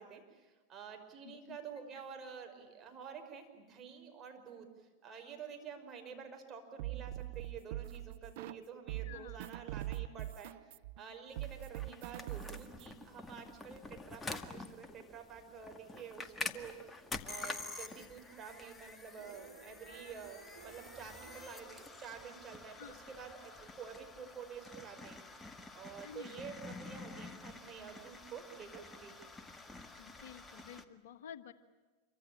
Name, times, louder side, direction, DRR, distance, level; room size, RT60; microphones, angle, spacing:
voice 1, 0.0-10.5 11.0-25.2 25.7-29.2, right 7 dB, 30° right, 4 dB, 5.7 m, -49 dB
voice 2, 1.2-1.6 9.0-9.4 22.8-23.0 26.0-26.4 30.0-31.5, left 9 dB, 65° left, 10 dB, 1.6 m, -51 dB
sound 1, 6.8-8.6 8.9-12.9, right 15 dB, 60° right, 0.8 m, -42 dB
sound 2, 11.3-30.8, left 3 dB, 15° left, 1.9 m, -48 dB
sound 3, 19.1-22.7, right 5 dB, 80° right, 2.7 m, -58 dB
27.5 x 24.5 x 8.9 m, 1.3 s
figure-of-eight pair, 90°, 0 cm